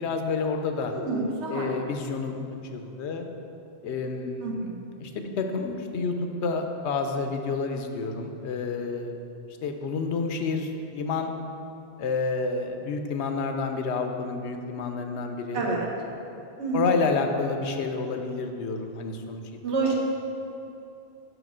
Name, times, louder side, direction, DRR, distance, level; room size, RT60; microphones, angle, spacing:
voice 1, 0.0-0.9 1.5-2.4 2.7-3.3 3.8-4.7 5.0-6.1 6.4-9.2 9.6-11.3 12.0-15.7 16.7-19.4 19.8-19.9, left 4 dB, 85° left, 5 dB, 0.9 m, -29 dB
voice 2, 0.9-1.7 4.4-4.9 15.5-15.9 16.6-16.8 19.6-19.9, right 3 dB, 85° right, -1 dB, 1.3 m, -28 dB
5.1 x 5.0 x 6.0 m, 2.9 s
omnidirectional pair, 1.1 m